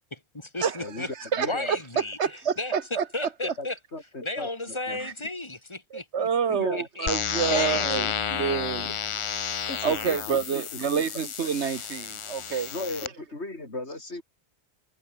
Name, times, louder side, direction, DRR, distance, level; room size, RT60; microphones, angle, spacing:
voice 1, 0.1-1.1 1.5-2.7 3.1-3.8 4.2-6.3 6.7-7.1 7.4-8.1, left 2 dB, 25° left, 2.8 m, -34 dB
voice 2, 0.8-1.7 3.6-5.0 6.5-6.8 7.5-7.7 8.1-8.2 8.8-9.0 9.7-10.4 12.7-14.2, left 2 dB, 80° left, 4.7 m, -37 dB
voice 3, 1.3-1.8 2.2-3.0 5.0-5.1 5.9-8.9 9.8-12.7, right 7 dB, 85° right, 1.5 m, -28 dB
sound 1, 7.1-13.1, left 7 dB, 55° left, 0.3 m, -31 dB
omnidirectional pair, 1.1 m